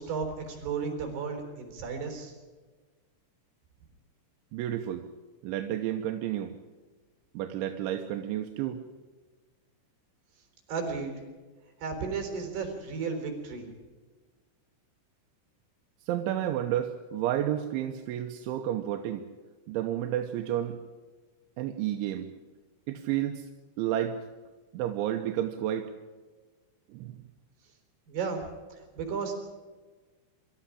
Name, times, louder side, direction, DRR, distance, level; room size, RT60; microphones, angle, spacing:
voice 1, 0.0-2.3 10.7-11.1 11.8-13.7 28.1-28.4 28.7-29.3, right 5 dB, 55° right, 4 dB, 6.0 m, -34 dB
voice 2, 4.5-5.1 5.4-6.5 7.3-8.8 16.1-19.3 19.7-20.8 21.6-22.3 22.9-23.5 23.8-24.2 24.7-25.9 26.9-27.2, right 11 dB, 80° right, 4 dB, 3.3 m, -31 dB
24.5 x 13.0 x 10.0 m, 1.3 s
omnidirectional pair, 5.5 m